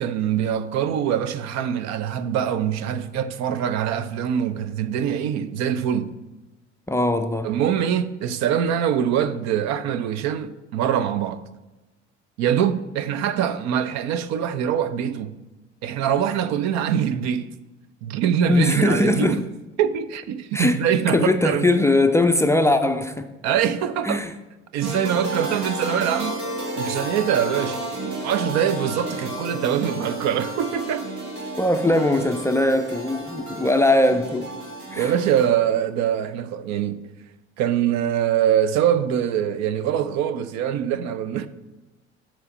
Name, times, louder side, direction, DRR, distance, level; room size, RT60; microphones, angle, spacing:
voice 1, 0.0-6.1 7.4-11.4 12.4-15.3 15.8-17.5 18.0-19.4 19.8-21.8 23.4-24.2 24.7-26.5 26.8-27.8 28.2-31.1 35.0-37.1 37.6-41.5, right 9 dB, 50° right, 0.6 m, -23 dB
voice 2, 6.9-7.5 18.5-19.4 20.5-20.9 21.1-23.3 24.0-24.3 31.6-34.5 34.9-35.1, left 2 dB, 10° left, 0.4 m, -20 dB
sound 1, 24.8-35.4, right 1 dB, 70° right, 2.0 m, -32 dB
9.1 x 3.1 x 5.8 m
figure-of-eight pair, 55°, 35 cm